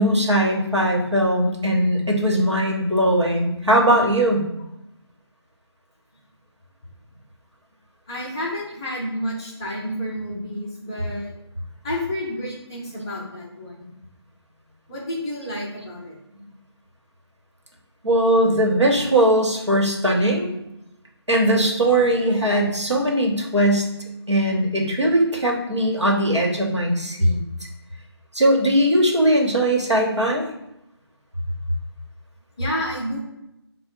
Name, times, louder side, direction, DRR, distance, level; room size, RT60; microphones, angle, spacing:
voice 1, 0.0-4.4 18.0-20.5 21.3-23.8 24.3-27.4 28.3-30.4, right 1 dB, 85° right, -1 dB, 1.1 m, -19 dB
voice 2, 8.1-11.3 11.8-13.9 14.9-16.1 22.3-22.4 32.6-33.2, equal, 10° left, -7 dB, 0.4 m, -30 dB
4.2 x 2.2 x 3.7 m, 0.85 s
figure-of-eight pair, 155°, 14 cm